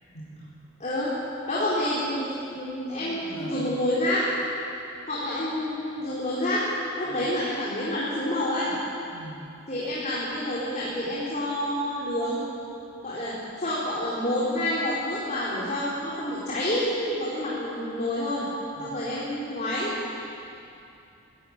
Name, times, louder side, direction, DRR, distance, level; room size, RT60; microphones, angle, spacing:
voice 1, 0.0-0.5 3.0-3.8 7.0-7.3 9.1-9.4 18.8-19.0, right 1 dB, 85° left, -4 dB, 5.6 m, -42 dB
voice 2, 0.8-1.1 1.5-4.3 5.1-6.6 7.0-8.7 9.7-12.4 13.0-18.4 18.8-19.9, left 1 dB, 40° left, -8 dB, 4.5 m, -28 dB
23.0 x 14.5 x 9.1 m, 2.6 s
head